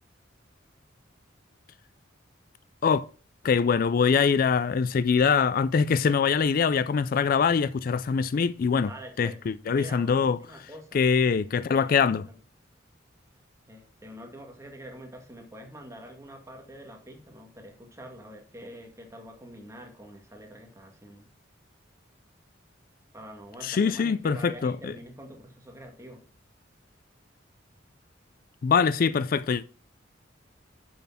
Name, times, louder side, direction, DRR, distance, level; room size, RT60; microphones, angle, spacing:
voice 1, 3.4-8.9 9.2-10.4 10.9-12.2 23.6-24.9 28.6-29.6, left 6 dB, 50° left, 0.3 m, -23 dB
voice 2, 8.8-11.1 11.6-12.4 13.7-21.3 23.1-26.2, equal, 15° right, 1.9 m, -45 dB
6.9 x 6.3 x 5.7 m
head